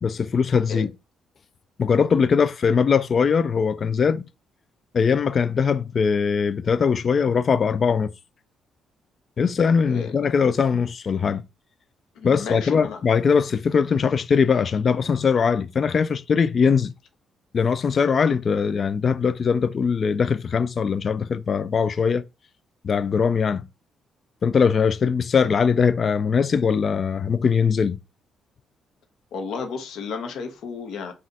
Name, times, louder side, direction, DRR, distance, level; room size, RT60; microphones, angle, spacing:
voice 1, 0.0-0.9 1.8-4.3 4.9-8.1 9.4-11.4 12.2-16.9 17.5-22.2 22.8-23.7 24.4-28.0, left 6 dB, 45° left, 0.4 m, -21 dB
voice 2, 12.1-13.0 29.3-31.1, left 5 dB, 80° left, 1.0 m, -32 dB
4.1 x 2.5 x 4.0 m
cardioid pair, 90°, 0 cm